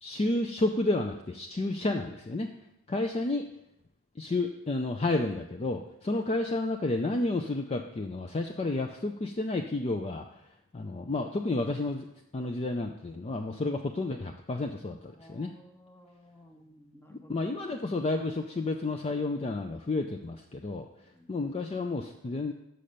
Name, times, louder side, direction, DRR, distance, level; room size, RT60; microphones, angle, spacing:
voice 1, 0.0-2.5 2.9-3.5 4.2-10.3 10.7-12.1 12.3-15.5 17.1-20.9 21.3-22.5, left 2 dB, 30° left, 4 dB, 0.4 m, -31 dB
voice 2, 15.1-17.4 21.1-21.3, left 1 dB, 10° left, 4 dB, 0.8 m, -55 dB
6.4 x 5.7 x 6.7 m, 0.80 s
head